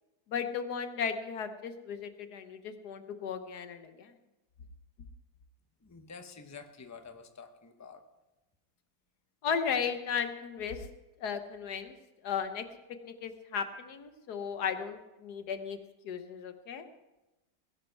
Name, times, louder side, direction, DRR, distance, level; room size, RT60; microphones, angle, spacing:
voice 1, 0.3-4.1 9.4-10.9 11.2-11.9 12.2-12.6 13.0-15.8 16.0-16.8, left 7 dB, 90° left, 8 dB, 1.6 m, -35 dB
voice 2, 5.8-8.0, left 5 dB, 15° left, 7 dB, 0.6 m, -49 dB
17.5 x 11.0 x 4.6 m, 1.0 s
omnidirectional pair, 1.7 m